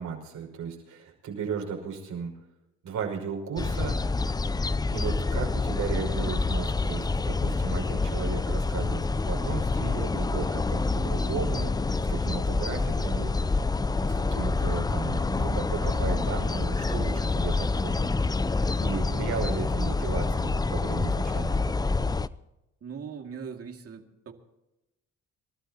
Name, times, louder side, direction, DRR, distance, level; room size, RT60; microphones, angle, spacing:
voice 1, 0.0-2.3 2.8-4.0 4.9-13.5 14.0-18.1 18.8-21.6, right 6 dB, 80° right, -1 dB, 5.5 m, -35 dB
sound 1, 3.6-22.3, left 3 dB, 15° left, 0.4 m, -27 dB
voice 2, 19.8-20.1 20.3-20.4 22.8-24.3, right 6 dB, 50° right, 4 dB, 2.3 m, -40 dB
28.0 x 13.0 x 2.9 m, 0.94 s
cardioid pair, 90°, 30 cm